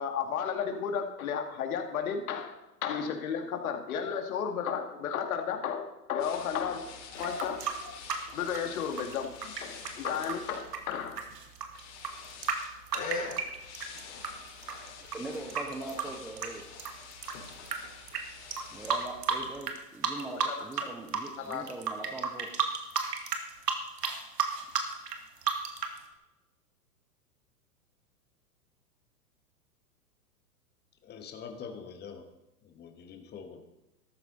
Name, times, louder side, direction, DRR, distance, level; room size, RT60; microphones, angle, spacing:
voice 1, 0.0-6.8 7.2-7.6 8.3-11.2 20.2-20.5 21.4-21.7, left 7 dB, 60° left, 5 dB, 2.2 m, -33 dB
sound 1, 6.2-19.6, left 4 dB, 45° left, 4.4 m, -45 dB
sound 2, 7.2-14.3 14.6-17.8 18.1-18.2 18.5-19.8 20.0-20.8 21.1-26.0, right 6 dB, 75° right, 2.2 m, -32 dB
voice 2, 15.0-16.6 18.7-22.5, right 2 dB, 5° right, 1 dB, 0.4 m, -41 dB
voice 3, 31.0-32.2 32.6-33.6, left 6 dB, 20° left, 5 dB, 1.6 m, -44 dB
13.5 x 13.5 x 4.0 m, 0.96 s
hypercardioid pair, 110°, 48 cm